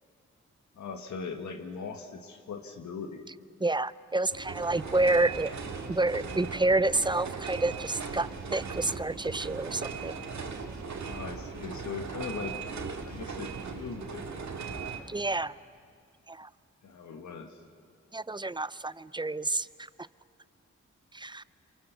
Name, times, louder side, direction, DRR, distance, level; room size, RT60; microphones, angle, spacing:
voice 1, 0.8-3.3 11.0-14.4 16.8-17.6, left 5 dB, 75° left, 5 dB, 1.6 m, -40 dB
voice 2, 3.6-5.5 5.9-10.1 15.1-15.5 16.3-16.5 18.1-19.7 21.1-21.4, right 2 dB, 15° right, 18 dB, 0.5 m, -29 dB
sound 1, 4.3-15.0, right 5 dB, 70° right, 2.2 m, -38 dB
27.0 x 24.0 x 6.9 m, 2.2 s
cardioid pair, 55°, 29 cm